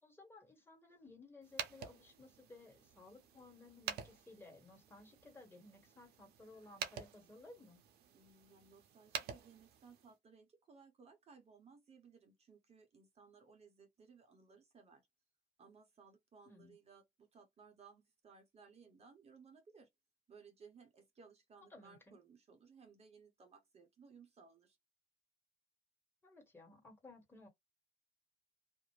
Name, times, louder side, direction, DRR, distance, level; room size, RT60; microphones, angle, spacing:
voice 1, 0.0-7.8 16.4-16.8 21.7-22.2 26.2-27.5, left 2 dB, 15° left, 1.4 m, -58 dB
sound 1, 1.4-10.1, right 8 dB, 70° right, 0.6 m, -49 dB
voice 2, 8.1-15.0 15.6-19.9 20.3-24.8, right 5 dB, 40° right, 0.8 m, -62 dB
2.4 x 2.1 x 3.0 m
cardioid pair, 110°, 17 cm